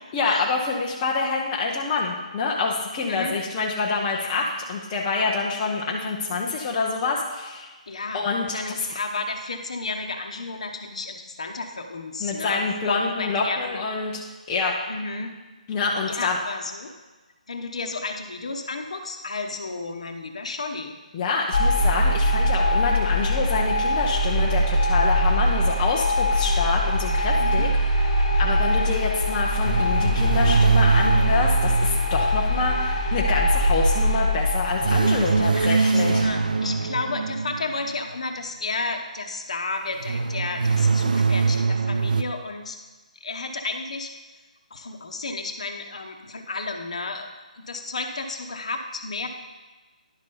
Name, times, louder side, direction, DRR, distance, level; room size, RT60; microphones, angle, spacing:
voice 1, 0.1-7.7 8.1-8.8 12.2-14.2 14.5-14.8 15.7-16.4 21.1-27.7 28.4-36.2, left 4 dB, 10° left, -3 dB, 0.3 m, -26 dB
voice 2, 7.9-8.2 8.5-13.8 14.9-15.3 16.1-16.9 17.5-20.9 27.4-27.7 35.2-42.8 43.2-44.1 44.7-47.3 47.7-49.3, left 3 dB, 50° left, 4 dB, 0.9 m, -32 dB
sound 1, 21.5-35.6, equal, 35° left, 1.6 m, -22 dB
sound 2, 29.6-33.2 34.8-37.9 40.0-42.2, right 4 dB, 85° right, 0.6 m, -23 dB
10.5 x 4.1 x 5.3 m, 1.2 s
hypercardioid pair, 180°, 4 cm